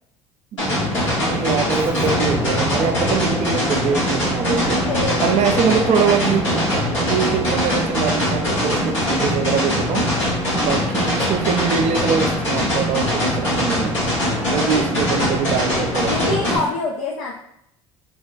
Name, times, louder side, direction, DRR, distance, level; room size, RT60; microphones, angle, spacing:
voice 1, 0.5-4.8 5.2-10.1 10.5-14.0 14.5-16.5, right 7 dB, 45° right, 7 dB, 0.4 m, -23 dB
sound 1, 0.6-16.6, equal, 90° left, 1.3 m, -22 dB
Keyboard (musical), 1.7-5.1, right 1 dB, 15° right, 0.7 m, -33 dB
sound 2, 2.0-7.7, equal, 40° left, 0.9 m, -33 dB
voice 2, 4.6-6.3 10.1-10.5 14.3-14.8 16.0-17.4, left 3 dB, 70° left, -2 dB, 0.4 m, -28 dB
3.9 x 2.1 x 2.4 m, 0.73 s
hypercardioid pair, 60°, 16 cm